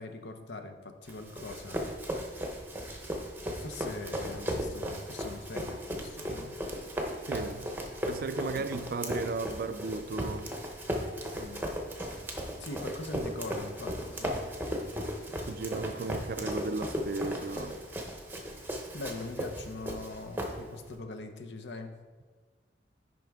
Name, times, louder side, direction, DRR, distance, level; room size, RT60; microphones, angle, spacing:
voice 1, 0.0-1.8 3.5-6.6 8.5-8.7 11.3-11.6 12.6-14.3 18.7-22.0, left 2 dB, 70° left, 0.7 m, -42 dB
Run, 1.1-20.9, equal, 10° right, 0.8 m, -36 dB
voice 2, 7.3-7.7 8.1-10.5 15.5-17.8, right 3 dB, 55° right, 0.4 m, -35 dB
9.3 x 5.2 x 3.5 m
head